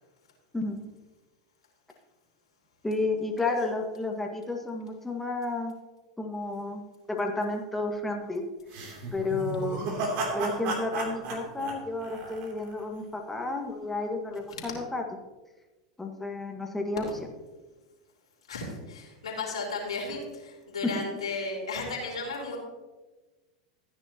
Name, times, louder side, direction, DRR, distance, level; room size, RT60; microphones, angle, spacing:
voice 1, 2.8-5.7 6.2-6.8 7.1-8.4 9.1-9.9 10.3-15.0 16.0-17.1 20.8-20.9, left 2 dB, 10° left, 2 dB, 1.9 m, -31 dB
sound 1, 8.7-12.8, right 3 dB, 55° right, 3.1 m, -33 dB
voice 2, 18.5-22.6, left 3 dB, 85° left, -3 dB, 4.0 m, -34 dB
15.0 x 10.0 x 3.0 m, 1.2 s
hypercardioid pair, 95°, 3 cm